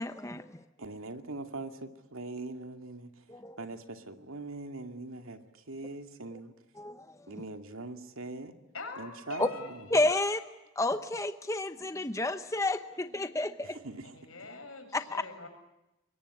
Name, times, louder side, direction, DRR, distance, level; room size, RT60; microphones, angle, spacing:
voice 1, 0.0-0.6 3.3-3.6 6.8-7.2 9.4-9.5 9.9-10.4 10.8-13.8 14.9-15.2, left 2 dB, 15° left, 9 dB, 0.9 m, -30 dB
voice 2, 0.8-3.2 3.6-6.5 7.3-8.5 9.0-9.9 13.7-14.2, right 2 dB, 85° right, 6 dB, 2.4 m, -42 dB
voice 3, 8.7-10.3 14.0-15.5, left 3 dB, 80° left, 6 dB, 6.7 m, -44 dB
25.0 x 22.0 x 9.8 m, 0.97 s
head